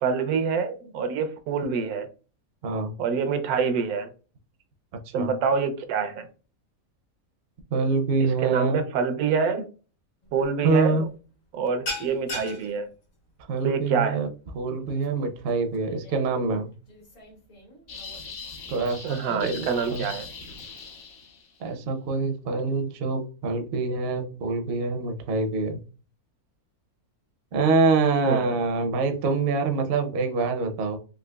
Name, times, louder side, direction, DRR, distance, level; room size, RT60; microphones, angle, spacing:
voice 1, 0.0-2.1 3.0-4.1 5.1-6.3 8.4-9.7 10.3-11.1 11.5-12.9 13.6-14.2 19.0-20.3 28.2-28.6, right 5 dB, 80° right, 8 dB, 1.1 m, -26 dB
voice 2, 7.7-8.8 10.6-11.1 13.4-14.3 14.5-16.7 18.7-20.1 21.6-25.8 27.5-31.0, right 4 dB, 60° right, 5 dB, 0.7 m, -25 dB
sound 1, 10.2-10.5 10.8-11.1 11.3-18.2, left 1 dB, 70° left, 1.6 m, -40 dB
sound 2, 17.9-21.6, left 4 dB, 55° left, 0.8 m, -41 dB
3.8 x 2.7 x 2.2 m, 0.36 s
omnidirectional pair, 1.6 m